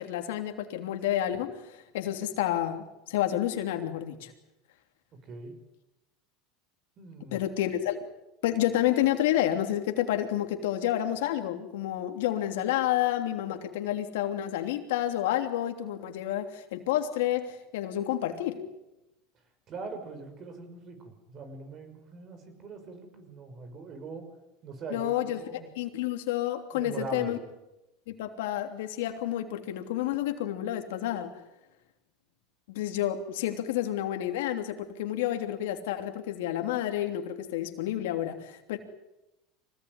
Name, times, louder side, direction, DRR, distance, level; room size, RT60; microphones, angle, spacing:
voice 1, 0.0-4.3 7.3-8.1 8.4-18.6 24.9-25.4 25.7-27.4 28.1-31.3 32.7-38.8, left 12 dB, 80° left, 5 dB, 3.2 m, -30 dB
voice 2, 5.2-5.5 7.0-7.4 19.7-24.3 24.6-25.7 26.7-27.4, right 4 dB, 40° right, 7 dB, 6.4 m, -41 dB
25.0 x 18.5 x 9.8 m, 0.95 s
supercardioid pair, 120°, 0 cm